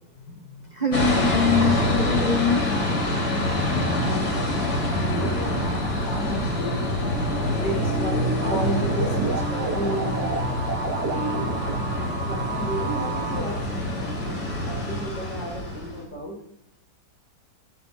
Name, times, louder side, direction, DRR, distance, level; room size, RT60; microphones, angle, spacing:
voice 1, 0.1-1.0 3.7-7.1 7.6-10.5 10.9-11.5 12.2-16.4, equal, 90° left, -1 dB, 6.6 m, -33 dB
voice 2, 0.8-2.7, left 5 dB, 30° right, 3 dB, 1.1 m, -23 dB
sound 1, 0.9-16.0, left 1 dB, 60° left, 4.0 m, -26 dB
sound 2, 8.4-13.4, right 4 dB, 65° right, 2.3 m, -30 dB
24.5 x 14.0 x 3.0 m, 0.77 s
omnidirectional pair, 1.9 m